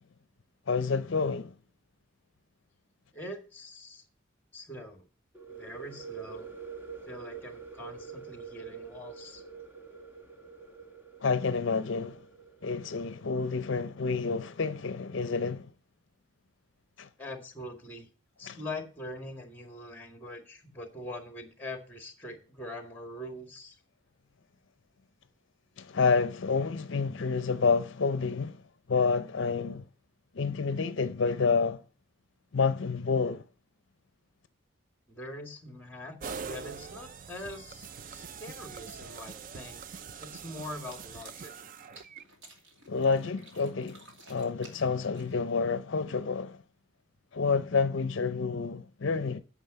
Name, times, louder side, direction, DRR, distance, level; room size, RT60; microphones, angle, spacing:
voice 1, 0.7-1.5 11.2-12.2 12.6-15.7 17.0-17.1 18.5-18.6 25.8-28.6 28.9-29.8 30.3-31.8 32.5-33.4 42.9-46.6 47.3-49.4, left 4 dB, 65° left, 0.5 m, -29 dB
voice 2, 3.1-4.0 4.5-5.0 5.5-6.5 7.1-9.4 17.2-18.1 18.4-23.8 35.1-39.8 40.2-41.5, left 1 dB, 10° left, 1.8 m, -43 dB
sound 1, 5.3-13.0, right 5 dB, 10° right, 1.1 m, -46 dB
sound 2, 36.2-42.2, right 6 dB, 40° right, 0.4 m, -43 dB
sound 3, 40.9-45.6, right 2 dB, 65° right, 2.5 m, -55 dB
9.1 x 6.2 x 7.7 m
head